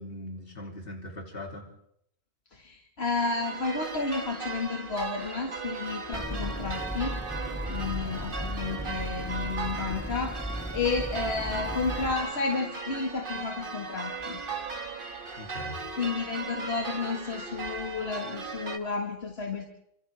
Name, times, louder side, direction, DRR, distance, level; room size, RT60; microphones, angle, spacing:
voice 1, 0.0-1.6 7.6-8.0 15.3-15.8, left 1 dB, 65° left, 1 dB, 3.1 m, -40 dB
voice 2, 2.5-7.2 7.7-14.4 16.0-19.7, left 4 dB, 80° left, 1 dB, 2.2 m, -32 dB
sound 1, 3.2-18.8, right 4 dB, 55° right, 1.7 m, -37 dB
sound 2, 6.1-12.1, equal, 10° left, 2.0 m, -36 dB
28.5 x 26.0 x 3.5 m, 0.75 s
omnidirectional pair, 1.0 m